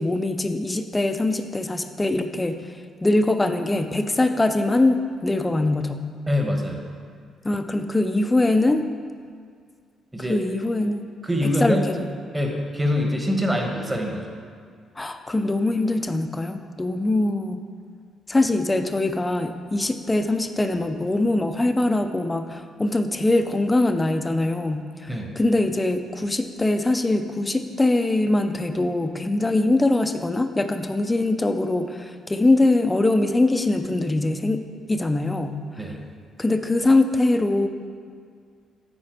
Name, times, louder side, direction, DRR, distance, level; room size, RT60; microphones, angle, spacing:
voice 1, 0.0-2.6 3.0-6.0 7.4-8.8 10.3-11.1 11.4-12.1 15.0-17.6 18.3-25.1 25.4-34.6 34.9-35.6 36.4-37.7, left 2 dB, 15° left, 8 dB, 0.5 m, -22 dB
voice 2, 6.3-6.8 10.1-10.4 11.2-11.8 12.3-14.2 25.1-25.3 35.8-36.0, left 1 dB, 15° right, 1 dB, 1.2 m, -24 dB
9.6 x 4.4 x 4.5 m, 2.1 s
cardioid pair, 90°, 0 cm